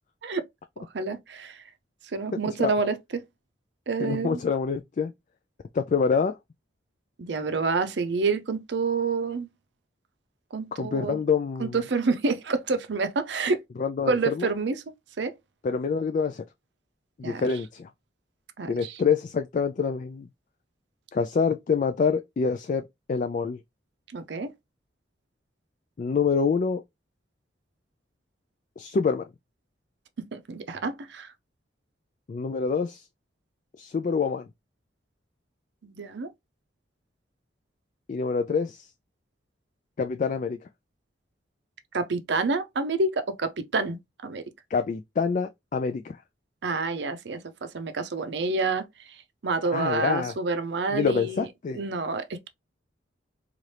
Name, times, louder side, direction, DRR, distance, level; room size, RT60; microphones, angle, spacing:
voice 1, 0.8-1.6 2.1-3.2 3.9-4.4 7.2-9.5 10.5-11.2 11.6-13.6 14.1-14.8 15.2-15.3 17.2-17.5 18.6-19.0 24.1-24.5 30.2-31.3 35.8-36.3 41.9-44.4 46.6-48.9 49.4-51.5 51.7-52.5, right 4 dB, 65° right, 0.6 m, -28 dB
voice 2, 4.0-5.1 5.7-6.4 10.8-11.8 13.8-14.5 15.6-16.4 17.2-17.9 18.7-20.3 21.1-22.8 23.1-23.6 26.0-26.8 28.8-29.2 32.3-33.0 33.8-34.4 38.1-38.9 40.0-40.6 44.7-46.2 49.7-50.3 50.9-51.8, left 5 dB, 40° left, 0.3 m, -26 dB
4.1 x 2.5 x 3.2 m
head